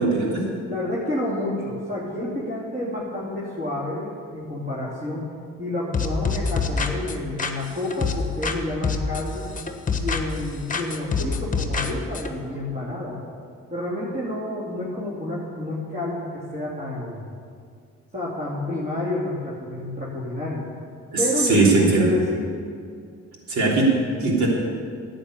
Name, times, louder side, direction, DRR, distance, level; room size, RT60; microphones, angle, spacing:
voice 1, 0.0-0.5 21.1-22.1 23.5-24.5, right 3 dB, 70° right, -2 dB, 3.4 m, -20 dB
voice 2, 0.7-5.3 5.6-9.5 10.0-13.2 13.7-17.2 18.1-20.7 21.2-22.5, left 1 dB, 30° right, -6 dB, 3.1 m, -29 dB
sound 1, 5.9-8.6 8.8-10.4 10.7-12.3, left 4 dB, 25° left, 1.2 m, -26 dB
11.0 x 8.4 x 8.4 m, 2.2 s
cardioid pair, 90°, 30 cm